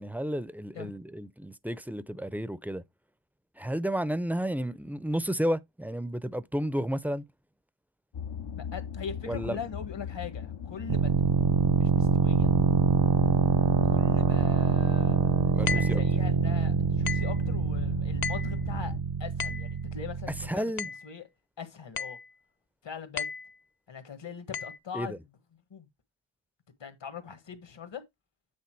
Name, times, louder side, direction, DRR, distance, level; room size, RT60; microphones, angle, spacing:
voice 1, 0.0-2.8 3.6-7.2 9.3-9.6 15.5-16.0 20.5-20.9 24.9-25.2, equal, 5° right, 0.4 m, -32 dB
sound 1, 8.1-19.0, left 7 dB, 85° left, 1.0 m, -39 dB
voice 2, 8.5-12.5 13.8-15.4 15.7-18.9 19.2-20.7 21.0-21.3 21.6-22.2 22.8-23.3 23.9-25.2 25.7-25.9 26.8-28.0, left 6 dB, 65° left, 1.6 m, -41 dB
sound 2, 10.9-20.5, right 5 dB, 60° right, 0.8 m, -25 dB
sound 3, 15.7-16.0 17.1-17.4 18.2-18.6 19.4-19.7 20.8-21.1 22.0-22.3 23.2-23.5 24.5-24.8, left 6 dB, 50° left, 0.6 m, -34 dB
8.6 x 3.7 x 4.6 m
wide cardioid pair, 80°, 46 cm